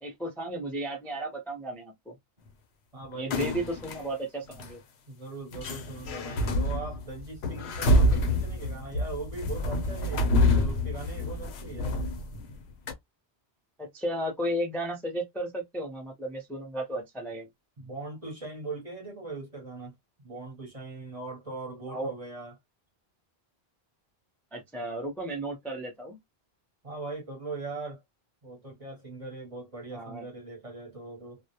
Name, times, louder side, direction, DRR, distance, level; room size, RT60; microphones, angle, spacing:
voice 1, 0.0-2.2 3.1-4.8 13.8-17.5 21.9-22.1 24.5-26.2 29.9-30.2, right 1 dB, ahead, 0.5 m, -34 dB
voice 2, 2.9-3.5 5.1-12.0 17.8-19.9 20.2-22.5 26.8-28.0 28.4-31.4, right 3 dB, 35° right, 0.8 m, -40 dB
sound 1, 3.3-4.0 4.5-4.7 5.5-12.6 12.9-13.0, left 1 dB, 90° left, 0.9 m, -27 dB
2.2 x 2.0 x 2.8 m
omnidirectional pair, 1.1 m